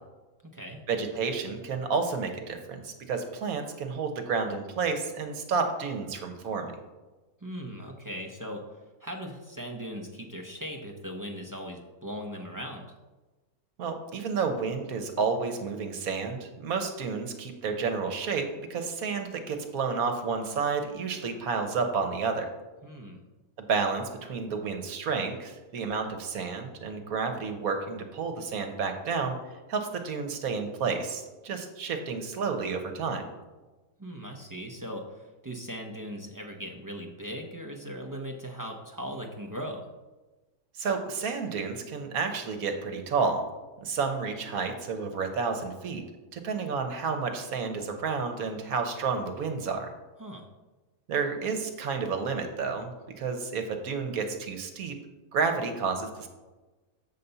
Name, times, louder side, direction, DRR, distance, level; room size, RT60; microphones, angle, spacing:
voice 1, 0.9-6.7 13.8-22.5 23.7-29.3 29.7-33.2 40.7-43.4 43.8-46.0 46.3-49.9 51.1-55.0 55.3-56.3, right 5 dB, 75° right, 5 dB, 1.4 m, -30 dB
voice 2, 7.4-8.6 9.0-12.9 22.8-23.2 34.0-39.8 50.2-50.4, equal, 25° right, 1 dB, 0.5 m, -39 dB
7.4 x 4.1 x 6.8 m, 1.2 s
omnidirectional pair, 1.6 m